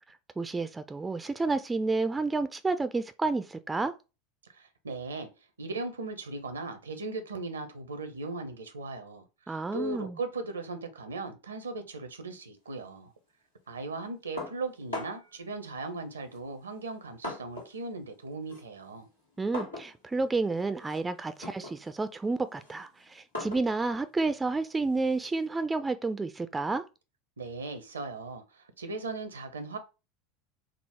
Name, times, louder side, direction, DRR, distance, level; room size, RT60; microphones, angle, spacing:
voice 1, 0.4-3.9 9.5-10.2 19.4-26.8, right 3 dB, 15° right, 0.4 m, -30 dB
voice 2, 4.5-5.3 5.6-13.1 13.7-19.1 27.4-29.8, right 3 dB, 80° right, 0.6 m, -38 dB
sound 1, 14.4-15.4 16.3-17.8 18.1-25.5, left 1 dB, 90° left, 1.5 m, -42 dB
3.7 x 2.0 x 4.2 m
figure-of-eight pair, 80°, 0 cm